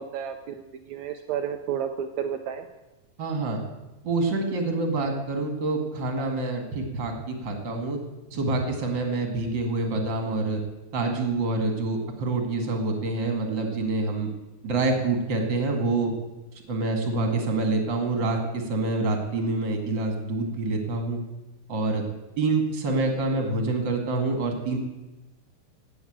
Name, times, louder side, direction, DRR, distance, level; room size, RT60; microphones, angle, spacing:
voice 1, 0.0-2.6, right 8 dB, 75° right, 5 dB, 1.7 m, -32 dB
voice 2, 3.2-3.6 4.0-8.0 8.3-10.6 10.9-14.3 14.6-16.1 16.7-21.2 21.7-22.0 22.4-24.8, right 3 dB, 40° right, 4 dB, 2.3 m, -26 dB
16.0 x 7.2 x 8.7 m, 1.1 s
omnidirectional pair, 4.1 m